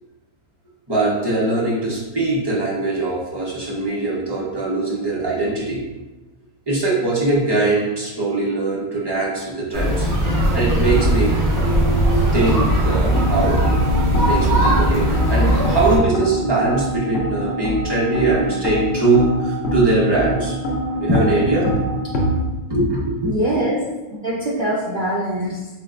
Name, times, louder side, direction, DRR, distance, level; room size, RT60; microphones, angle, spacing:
voice 1, 0.9-5.8 6.7-10.1 10.5-13.6 14.1-20.6 21.0-21.8 22.7-23.3, right 2 dB, 25° right, -6 dB, 0.5 m, -21 dB
sound 1, 9.7-16.0, right 1 dB, 65° right, 1.8 m, -18 dB
sound 2, 13.0-22.4, equal, 60° left, 0.7 m, -25 dB
voice 2, 23.2-23.8 24.2-25.7, right 1 dB, 80° right, -6 dB, 0.4 m, -23 dB
4.5 x 3.2 x 2.5 m, 1.1 s
omnidirectional pair, 1.7 m